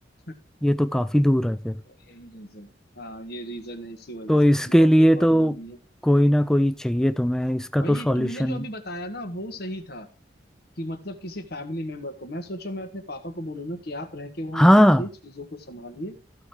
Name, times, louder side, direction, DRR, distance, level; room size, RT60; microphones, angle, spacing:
voice 1, 0.6-1.8 4.3-5.6 6.0-8.6 14.5-15.0, equal, 5° left, 0.5 m, -19 dB
voice 2, 1.9-2.7 2.9-5.8 7.8-10.1 10.8-16.2, equal, 60° left, 1.5 m, -36 dB
14.5 x 4.9 x 4.5 m
head